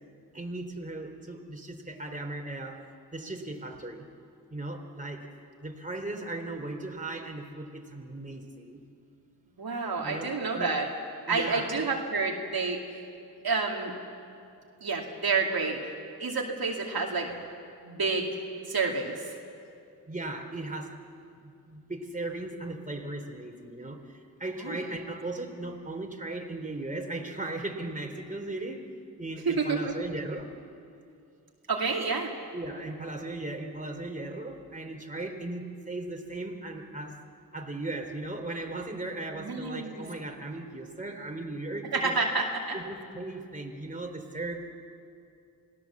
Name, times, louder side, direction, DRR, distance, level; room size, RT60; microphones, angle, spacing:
voice 1, 0.3-2.8 3.1-4.1 4.5-5.2 5.6-8.8 10.0-10.7 11.3-11.9 20.1-21.0 21.3-28.8 29.2-30.5 32.5-37.2 37.5-42.1 42.7-44.7, right 2 dB, 20° right, 2 dB, 3.4 m, -37 dB
voice 2, 9.6-10.9 11.3-12.8 13.4-13.9 14.8-15.9 16.2-17.3 17.8-18.4 18.7-19.1 24.6-24.8 29.5-29.9 31.7-32.3 39.3-40.0 41.9-42.8, right 4 dB, 65° right, 0 dB, 2.5 m, -29 dB
27.0 x 18.0 x 7.3 m, 2.5 s
cardioid pair, 45°, 39 cm